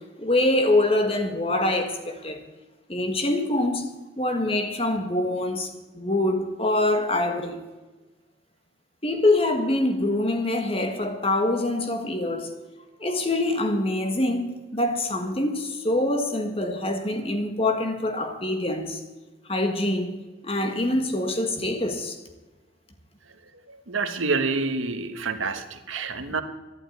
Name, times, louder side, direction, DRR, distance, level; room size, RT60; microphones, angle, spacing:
voice 1, 0.0-2.4 2.9-3.9 4.2-7.6 9.0-12.5 13.0-19.0 19.5-20.1 20.4-22.2, left 1 dB, 30° left, 1.6 m, -25 dB
voice 2, 23.3-26.4, right 4 dB, 90° right, 1.4 m, -28 dB
12.0 x 11.5 x 9.3 m
head